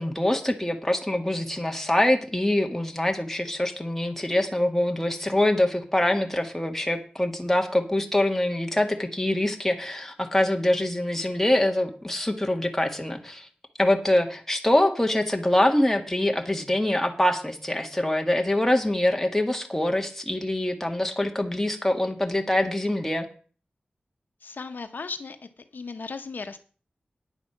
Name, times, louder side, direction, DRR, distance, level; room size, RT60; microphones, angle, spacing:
voice 1, 0.0-13.5 13.8-23.3, left 1 dB, 10° left, 4 dB, 1.9 m, -24 dB
voice 2, 24.4-25.4 25.7-26.6, left 4 dB, 80° left, 9 dB, 0.9 m, -36 dB
10.0 x 8.1 x 5.9 m, 0.41 s
wide cardioid pair, 65°, 3 cm